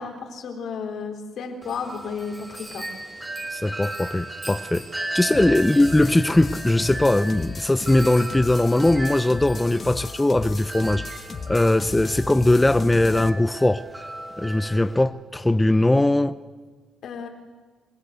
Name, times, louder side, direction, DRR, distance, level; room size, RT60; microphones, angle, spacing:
voice 1, 0.0-2.9 5.3-5.4 17.0-17.3, left 5 dB, 70° left, 3 dB, 3.9 m, -33 dB
Wind chime, 1.6-15.0, right 1 dB, 15° right, 3.3 m, -36 dB
voice 2, 3.5-11.1 11.5-13.8 14.4-16.4, left 1 dB, 10° left, 11 dB, 0.7 m, -20 dB
sound 1, 5.3-13.3, left 5 dB, 40° left, 1.2 m, -36 dB
27.0 x 18.0 x 8.1 m, 1.4 s
cardioid pair, 90°, 0 cm